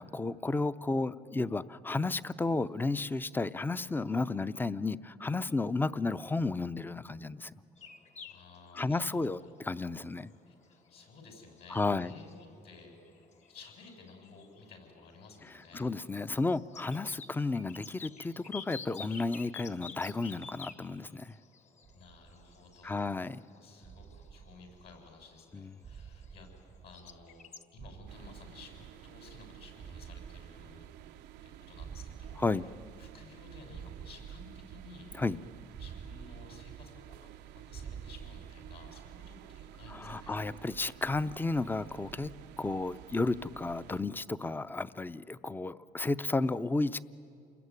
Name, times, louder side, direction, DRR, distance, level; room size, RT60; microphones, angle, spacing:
voice 1, 0.0-7.5 8.7-10.3 11.7-12.1 15.7-21.3 22.8-23.4 25.5-25.7 32.4-32.6 35.1-35.4 39.9-42.3 42.6-47.0, left 3 dB, 10° left, 15 dB, 0.6 m, -32 dB
sound 1, 7.8-26.7 26.9-27.6, left 5 dB, 45° left, 1.6 m, -51 dB
voice 2, 8.3-9.5 10.5-15.9 21.9-26.5 26.8-30.9 31.4-32.4 33.0-35.1 35.8-40.4, left 4 dB, 70° left, 3 dB, 7.0 m, -54 dB
sound 2, 21.8-23.2 23.8-25.4 25.8-27.5 27.8-29.4 29.8-31.4 31.8-33.4 33.7-35.3 35.7-37.4 37.7-39.4, right 7 dB, 35° right, 0.7 m, -50 dB
sound 3, 28.1-44.0, right 12 dB, 85° right, 0.7 m, -51 dB
28.5 x 21.0 x 9.7 m, 2.5 s
cardioid pair, 110°, 17 cm